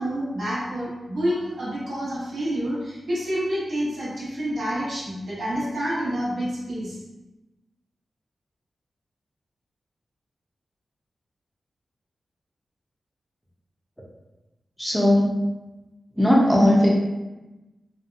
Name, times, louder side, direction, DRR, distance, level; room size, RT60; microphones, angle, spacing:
voice 1, 0.0-7.0, equal, 75° right, -8 dB, 1.0 m, -28 dB
voice 2, 14.8-15.3 16.2-16.9, left 1 dB, 5° left, -3 dB, 0.5 m, -17 dB
2.7 x 2.2 x 2.5 m, 1.1 s
cardioid pair, 65°, 0 cm